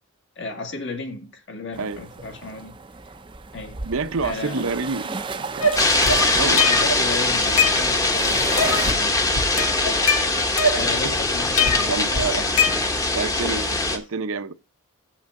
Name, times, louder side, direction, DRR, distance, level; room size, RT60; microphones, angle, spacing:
voice 1, 0.4-2.8 3.5-3.8 4.2-4.7 6.2-9.6 10.7-12.8, left 3 dB, 55° left, 1.9 m, -34 dB
sound 1, 1.7-8.9, right 4 dB, 20° right, 0.5 m, -35 dB
voice 2, 3.8-5.7 6.2-6.7 10.8-11.0 11.8-12.4 13.1-14.5, right 4 dB, 70° right, 0.7 m, -28 dB
sound 2, 5.6-7.0 7.4-8.2 8.6-9.0 9.4-11.1 11.6-13.2, left 3 dB, 85° left, 1.5 m, -23 dB
sound 3, 5.8-14.0, left 2 dB, 15° left, 1.0 m, -22 dB
7.4 x 5.9 x 6.4 m
head